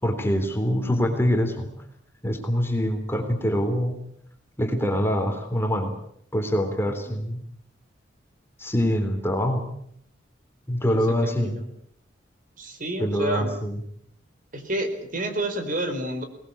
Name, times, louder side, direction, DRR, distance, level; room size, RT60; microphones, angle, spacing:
voice 1, 0.0-1.7 2.2-4.0 4.6-5.9 6.3-7.4 8.6-9.7 10.7-11.6 13.0-13.8, equal, 15° left, 5 dB, 3.6 m, -24 dB
voice 2, 10.9-11.7 12.6-13.5 14.5-16.2, right 1 dB, 45° right, 6 dB, 4.3 m, -29 dB
25.0 x 20.0 x 8.5 m, 0.68 s
head